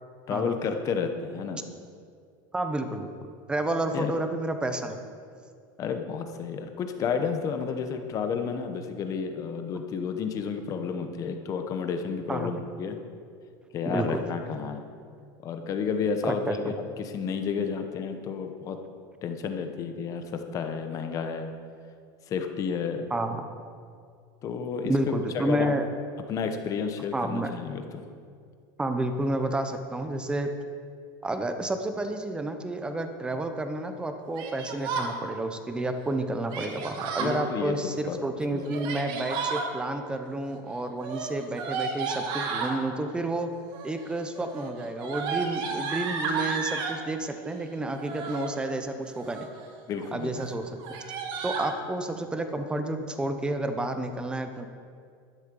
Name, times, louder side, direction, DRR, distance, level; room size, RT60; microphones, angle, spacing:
voice 1, 0.3-1.6 3.9-4.1 5.8-13.0 13.7-14.8 15.4-18.8 19.2-21.5 22.3-23.1 24.4-24.9 25.3-25.7 26.3-28.0 37.2-38.2 38.5-38.6 49.9-50.3, left 6 dB, 30° left, 6 dB, 1.0 m, -31 dB
voice 2, 2.5-3.1 3.5-5.0 12.3-12.5 13.9-14.2 16.3-16.7 23.1-23.4 24.8-25.9 27.1-27.5 28.8-30.5 31.2-43.5 43.8-49.5 50.1-50.8 51.4-54.7, right 2 dB, 10° right, 7 dB, 0.7 m, -30 dB
Yell, 34.3-35.1 36.5-37.4 38.6-39.7 41.0-42.8 43.6-44.0 44.3-47.0 47.9-48.5 49.0-49.6 50.0-50.1 50.4-50.5 50.8-51.7, right 5 dB, 45° right, 1.5 m, -32 dB
12.0 x 9.8 x 5.4 m, 2.2 s
supercardioid pair, 160°, 11 cm